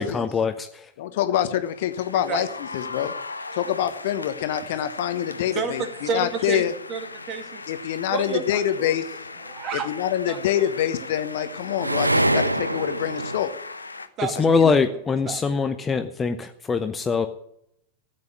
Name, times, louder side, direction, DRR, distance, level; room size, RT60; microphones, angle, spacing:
voice 1, 0.0-0.9 14.4-17.3, left 5 dB, 20° left, 8 dB, 0.8 m, -23 dB
voice 2, 1.0-2.5 2.7-3.1 3.5-6.7 7.7-9.2 9.7-13.5 14.3-14.7, left 11 dB, 55° left, 11 dB, 1.1 m, -26 dB
sound 1, 1.6-14.1, left 3 dB, 80° left, 1.0 m, -39 dB
sound 2, 5.3-5.4 10.5-13.4, right 1 dB, 85° right, 0.6 m, -25 dB
voice 3, 5.5-6.6 6.9-7.6 8.1-9.0 9.4-9.9 10.3-10.7 14.2-14.6 14.9-15.0 15.2-15.6, right 6 dB, 35° right, 8 dB, 2.2 m, -31 dB
14.5 x 8.5 x 8.5 m, 0.74 s
figure-of-eight pair, 90°, 0 cm